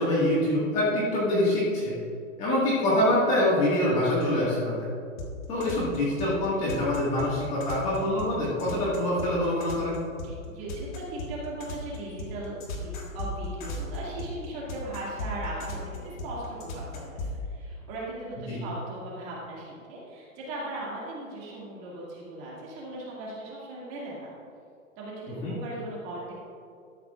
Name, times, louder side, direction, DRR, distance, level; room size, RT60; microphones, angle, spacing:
voice 1, 0.0-2.0 2.4-4.9 5.5-10.0 18.5-18.6 25.4-25.5, left 1 dB, 15° left, -7 dB, 1.8 m, -25 dB
sound 1, 5.2-17.4, left 2 dB, 35° left, 1.6 m, -36 dB
voice 2, 10.2-24.3 25.0-26.3, right 2 dB, 25° right, -5 dB, 2.3 m, -38 dB
13.0 x 11.5 x 2.5 m, 2.4 s
hypercardioid pair, 170°, 40 cm